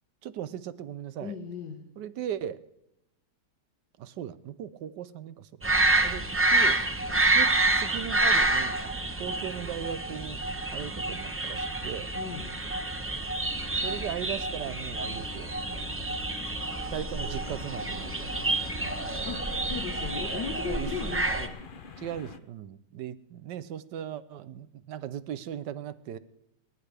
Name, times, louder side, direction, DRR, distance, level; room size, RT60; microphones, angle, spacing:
voice 1, 0.2-1.4 2.0-2.6 4.0-5.6 6.0-6.8 7.3-8.8 9.2-10.4 10.7-12.1 13.8-16.1 16.9-18.3 20.6-21.2 22.0-26.2, right 10 dB, 90° right, 14 dB, 1.4 m, -38 dB
voice 2, 1.2-1.9 12.2-12.5 19.3-21.6, left 6 dB, 85° left, 3 dB, 1.8 m, -37 dB
sound 1, 5.6-21.5, right 2 dB, 15° right, 0.4 m, -28 dB
sound 2, 13.4-19.2, left 3 dB, 65° left, 3.0 m, -47 dB
sound 3, 17.4-22.4, left 5 dB, 45° left, 0.6 m, -46 dB
29.5 x 11.0 x 3.3 m, 0.87 s
omnidirectional pair, 1.8 m